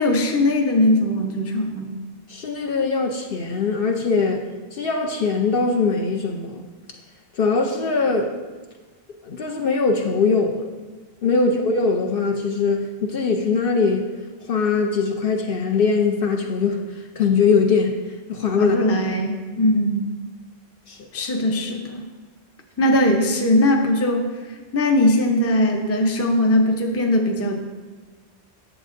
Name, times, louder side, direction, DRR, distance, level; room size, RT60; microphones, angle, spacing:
voice 1, 0.0-2.0 11.3-11.5 18.6-20.1 21.1-22.0 22.8-24.3 24.7-27.6, left 1 dB, 15° left, 3 dB, 0.5 m, -20 dB
voice 2, 2.3-4.4 4.7-6.6 7.4-8.3 9.3-10.6 11.2-14.0 14.5-16.8 17.2-17.9 18.3-18.7 20.9-21.0, left 4 dB, 60° left, 3 dB, 0.8 m, -21 dB
10.0 x 7.5 x 2.5 m, 1.4 s
omnidirectional pair, 1.2 m